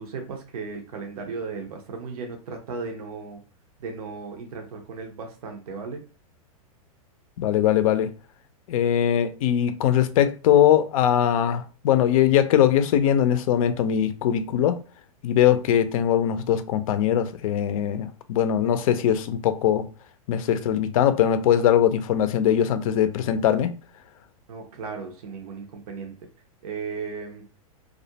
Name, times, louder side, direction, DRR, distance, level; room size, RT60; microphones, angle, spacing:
voice 1, 0.0-3.4 3.8-6.0 24.5-26.2 26.6-27.5, right 4 dB, 75° right, 0.6 m, -36 dB
voice 2, 7.4-8.1 8.7-14.8 15.2-19.9 20.3-23.7, left 10 dB, 65° left, 0.4 m, -21 dB
2.4 x 2.1 x 2.7 m
hypercardioid pair, 125°, 19 cm